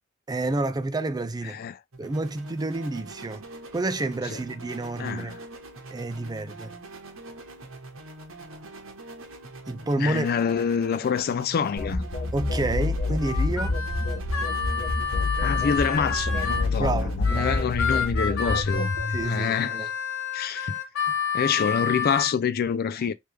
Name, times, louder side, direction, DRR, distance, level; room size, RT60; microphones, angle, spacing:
voice 1, 0.3-1.6 2.0-3.4 3.7-5.3 5.9-6.8 9.7-10.3 12.3-13.8 16.7-17.6 19.1-19.9 21.0-21.1, right 2 dB, 20° right, 0.4 m, -29 dB
voice 2, 1.4-1.8 4.3-4.4 5.0-5.4 10.0-12.0 15.4-18.9 19.2-19.9 20.3-20.8 21.3-23.1, left 7 dB, 50° left, 0.3 m, -26 dB
sound 1, 1.9-19.7, right 2 dB, 90° right, 1.2 m, -44 dB
sound 2, 11.8-19.4, left 2 dB, 65° left, 0.9 m, -27 dB
Harmonica, 13.2-16.7 17.2-22.3, left 6 dB, 90° left, 1.2 m, -29 dB
3.4 x 3.3 x 3.2 m
head